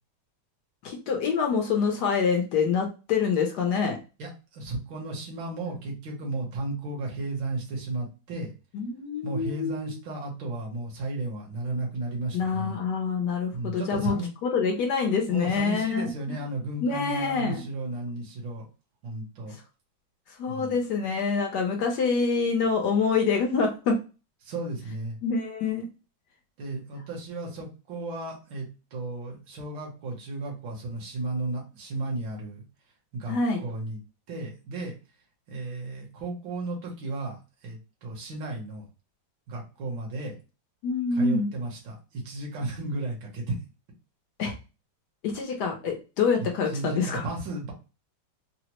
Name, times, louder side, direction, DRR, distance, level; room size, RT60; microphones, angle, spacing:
voice 1, 0.8-4.0 5.6-5.7 8.7-9.9 12.3-16.4 16.8-17.6 20.4-24.0 25.2-25.9 33.3-33.6 40.8-41.5 44.4-44.5 45.2-47.3, left 5 dB, 65° left, 2 dB, 1.1 m, -26 dB
voice 2, 4.2-8.5 9.2-12.8 13.5-14.3 15.3-18.7 19.0-19.6 20.5-21.0 24.4-25.2 26.6-32.6 33.1-33.4 33.6-34.0 34.3-34.9 35.5-37.4 37.6-38.8 39.5-40.4 41.1-43.6 46.4-47.7, right 2 dB, 75° right, -2 dB, 1.7 m, -34 dB
4.0 x 2.0 x 2.9 m, 0.31 s
omnidirectional pair, 2.1 m